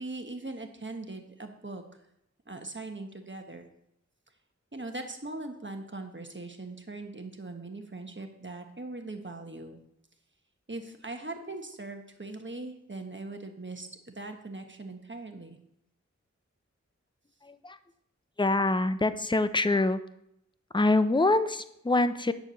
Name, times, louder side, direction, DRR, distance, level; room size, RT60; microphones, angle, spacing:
voice 1, 0.0-1.8 2.5-3.7 4.7-9.8 10.7-15.6, right 2 dB, 40° right, 5 dB, 1.2 m, -40 dB
voice 2, 17.4-17.8 18.4-20.0 20.7-22.3, left 2 dB, 15° left, 12 dB, 0.5 m, -25 dB
9.1 x 4.6 x 6.9 m, 0.78 s
wide cardioid pair, 40°, 29 cm